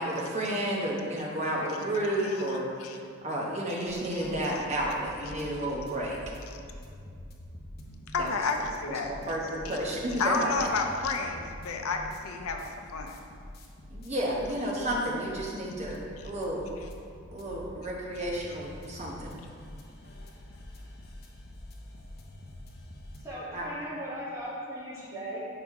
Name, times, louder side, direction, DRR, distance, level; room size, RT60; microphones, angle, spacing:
voice 1, 0.0-2.7 3.2-6.2 8.2-8.4 8.9-10.8 13.9-16.6 17.3-19.4 23.5-23.7, right 1 dB, 30° right, -3 dB, 0.9 m, -31 dB
sound 1, 3.9-23.2, left 1 dB, 45° left, 0.7 m, -46 dB
voice 2, 8.1-9.1 10.2-12.7 12.9-13.2, left 4 dB, 80° left, 4 dB, 0.5 m, -30 dB
voice 3, 23.2-25.4, right 1 dB, 15° right, -8 dB, 1.3 m, -38 dB
6.3 x 4.9 x 3.6 m, 2.3 s
head